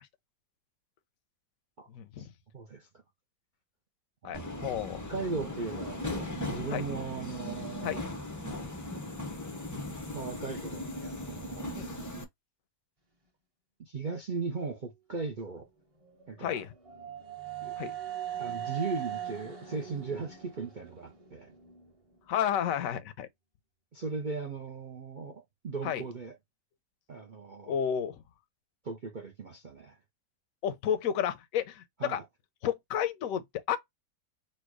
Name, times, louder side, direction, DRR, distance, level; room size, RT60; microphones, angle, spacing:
voice 1, 1.9-2.3 4.2-5.0 6.7-6.8 7.8-8.0 11.7-12.0 16.4-16.7 17.8-17.9 22.3-23.3 25.8-26.0 27.7-28.2 30.6-32.2 32.6-33.8, left 9 dB, 65° left, 1.0 m, -31 dB
voice 2, 2.5-2.9 4.2-4.7 5.1-8.0 10.1-11.7 13.8-15.7 16.3-16.6 17.6-17.7 18.4-21.5 23.9-26.4 27.1-27.8 28.8-30.0 32.0-32.2, right 4 dB, 55° right, 0.5 m, -38 dB
Subway metro underground, 4.3-12.2, left 1 dB, 30° left, 0.3 m, -38 dB
sound 1, 16.0-21.9, right 10 dB, 25° right, 0.9 m, -40 dB
4.4 x 2.3 x 4.6 m
omnidirectional pair, 1.8 m